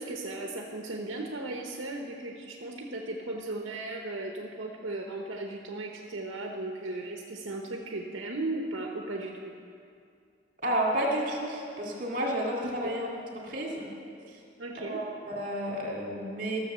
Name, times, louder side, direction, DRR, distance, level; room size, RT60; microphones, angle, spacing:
voice 1, 0.0-9.5 14.6-15.0, right 2 dB, 75° right, 1 dB, 0.9 m, -36 dB
voice 2, 10.6-13.1 13.4-13.9 14.3-14.4 14.8-16.6, right 1 dB, 45° right, -2 dB, 2.2 m, -31 dB
13.5 x 6.9 x 6.8 m, 2.4 s
head